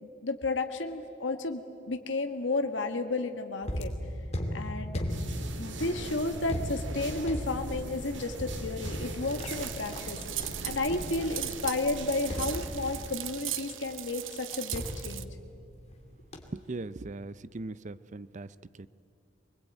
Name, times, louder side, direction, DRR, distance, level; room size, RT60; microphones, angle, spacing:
voice 1, 0.0-3.9 4.5-5.0 5.6-10.2 10.6-15.3, left 2 dB, 70° left, 6 dB, 1.5 m, -32 dB
sound 1, 3.6-11.6 12.3-13.3 14.7-16.0 16.3-16.7, equal, 35° left, 2.6 m, -37 dB
sound 2, 5.1-13.2, right 2 dB, 65° right, 1.9 m, -41 dB
sound 3, 9.3-15.2, right 13 dB, 90° right, 0.9 m, -39 dB
voice 2, 16.5-18.9, right 2 dB, 40° right, 16 dB, 0.6 m, -40 dB
24.0 x 20.5 x 9.1 m, 2.5 s
head